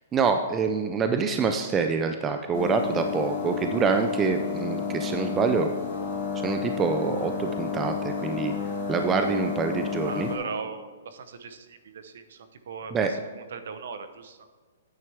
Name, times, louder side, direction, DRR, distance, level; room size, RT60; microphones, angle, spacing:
voice 1, 0.1-5.7 6.4-8.5 8.9-10.3 12.9-13.1, right 5 dB, 10° right, 6 dB, 0.3 m, -26 dB
sound 1, 2.5-10.4, left 6 dB, 30° left, 2.3 m, -31 dB
voice 2, 10.0-14.4, right 5 dB, 55° right, 9 dB, 0.9 m, -39 dB
9.4 x 9.0 x 3.5 m, 1.5 s
hypercardioid pair, 180°, 0 cm